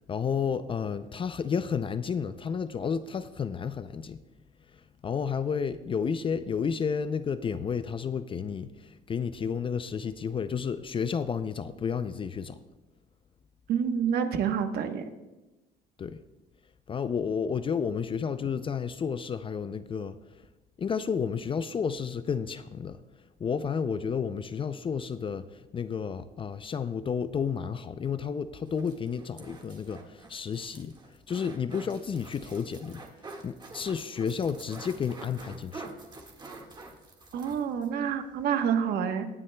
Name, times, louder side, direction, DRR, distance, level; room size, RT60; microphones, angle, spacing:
voice 1, 0.0-4.2 5.0-12.6 16.0-16.2 16.9-20.4 20.8-23.0 23.4-30.9 31.3-33.0 33.4-35.9, left 6 dB, 30° left, 0.4 m, -31 dB
voice 2, 13.7-15.0 37.3-39.3, right 7 dB, 70° right, 1.1 m, -28 dB
sound 1, 28.6-37.9 38.2-38.3 38.6-38.7, right 3 dB, 25° right, 1.7 m, -47 dB
18.0 x 9.7 x 2.2 m
cardioid pair, 110°, 17 cm